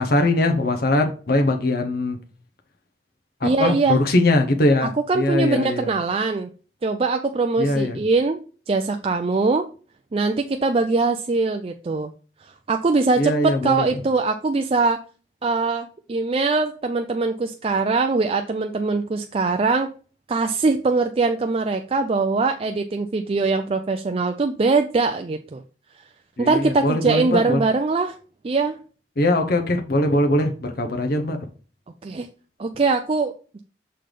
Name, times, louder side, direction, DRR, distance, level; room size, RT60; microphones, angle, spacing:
voice 1, 0.0-2.2 3.4-4.9 5.1-5.9 7.6-8.0 13.2-14.0 26.4-27.6 29.2-31.4, left 1 dB, 55° left, 4 dB, 0.9 m, -21 dB
voice 2, 3.4-4.0 4.8-6.5 6.8-8.4 8.7-9.7 10.1-12.1 12.4-15.0 15.4-19.9 20.3-25.6 26.4-28.2 28.4-28.8 32.0-32.3 32.6-33.6, right 3 dB, 30° right, 6 dB, 0.4 m, -22 dB
6.6 x 3.9 x 5.0 m, 0.38 s
head